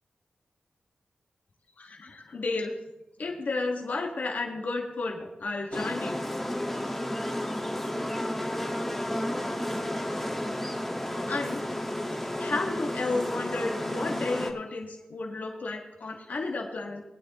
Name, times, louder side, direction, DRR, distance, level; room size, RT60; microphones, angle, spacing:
voice 1, 1.8-2.7 3.2-6.2 11.3-11.6 12.4-17.0, left 3 dB, 65° left, 0 dB, 1.6 m, -32 dB
sound 1, 5.7-14.5, left 1 dB, 5° left, 1.5 m, -32 dB
19.0 x 9.3 x 3.0 m, 0.97 s
wide cardioid pair, 75°, 3 cm